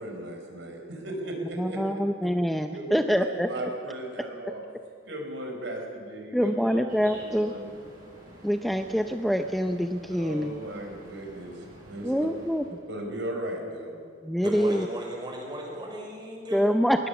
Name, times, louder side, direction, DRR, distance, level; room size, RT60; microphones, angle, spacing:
voice 1, 0.0-1.9 2.7-3.1 3.5-4.6 5.0-7.7 10.1-12.3 12.9-13.9, right 1 dB, 65° right, 2 dB, 4.8 m, -37 dB
voice 2, 1.6-3.5 6.3-7.5 8.4-10.5 12.0-12.6 14.2-14.9 16.5-17.1, equal, ahead, 6 dB, 0.6 m, -25 dB
sound 1, 6.9-12.8, equal, 45° right, 6.9 m, -50 dB
voice 3, 14.4-16.7, equal, 25° right, 0 dB, 4.9 m, -36 dB
21.5 x 20.0 x 7.1 m, 2.2 s
head